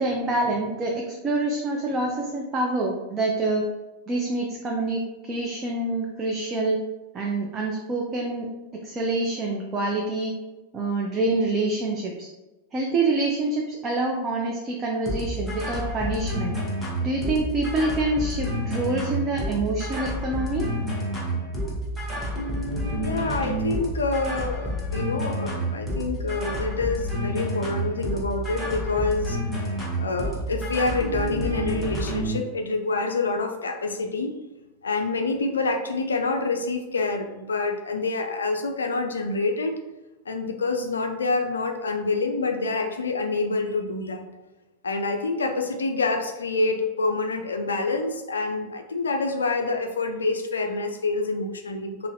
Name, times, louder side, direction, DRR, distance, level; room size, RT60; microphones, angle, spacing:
voice 1, 0.0-3.7 4.1-6.8 7.1-8.5 8.8-10.3 10.7-12.3 12.7-16.5 17.0-20.6, right 2 dB, 25° right, -1 dB, 0.4 m, -26 dB
sound 1, 15.1-32.4, equal, 10° left, 0.9 m, -29 dB
voice 2, 23.0-29.7 30.0-34.3 34.8-39.7 40.3-44.3 44.8-52.1, left 3 dB, 70° left, 5 dB, 0.3 m, -27 dB
3.7 x 2.1 x 2.7 m, 1.1 s
figure-of-eight pair, 90°, 0 cm